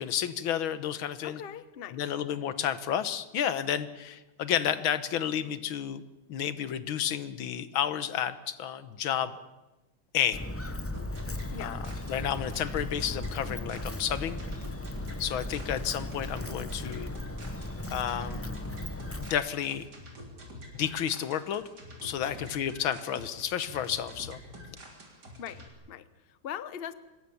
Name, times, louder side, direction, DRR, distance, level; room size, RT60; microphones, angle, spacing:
voice 1, 0.0-1.4 1.9-6.0 6.3-9.3 10.1-10.4 11.6-11.8 12.1-14.4 15.2-17.1 17.9-18.6 19.2-19.9 20.7-21.6 22.0-24.4, left 9 dB, 85° left, 13 dB, 1.9 m, -31 dB
voice 2, 1.2-2.0 11.5-11.8 25.4-25.6 25.9-26.9, left 9 dB, 40° left, 14 dB, 0.8 m, -40 dB
Walk footsteps, 10.3-19.3, left 1 dB, 20° left, 0.4 m, -37 dB
sound 1, 10.9-25.7, equal, 55° right, 4.3 m, -47 dB
25.5 x 20.5 x 7.0 m, 1.1 s
omnidirectional pair, 2.2 m